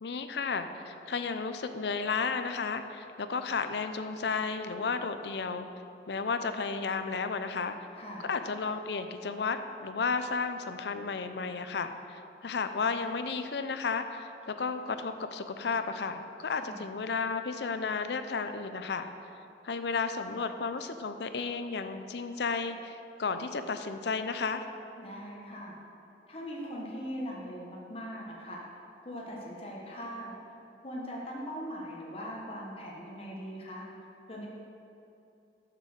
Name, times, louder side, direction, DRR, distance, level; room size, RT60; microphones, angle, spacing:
voice 1, 0.0-5.7 6.1-7.7 8.3-19.1 19.6-24.6, left 4 dB, 70° left, 9 dB, 0.5 m, -33 dB
voice 2, 7.9-8.3 16.5-16.9 25.0-25.8 26.3-28.7 29.0-30.4 30.8-33.8 34.3-34.5, equal, 35° left, -3 dB, 1.2 m, -40 dB
7.0 x 6.7 x 6.5 m, 2.7 s
head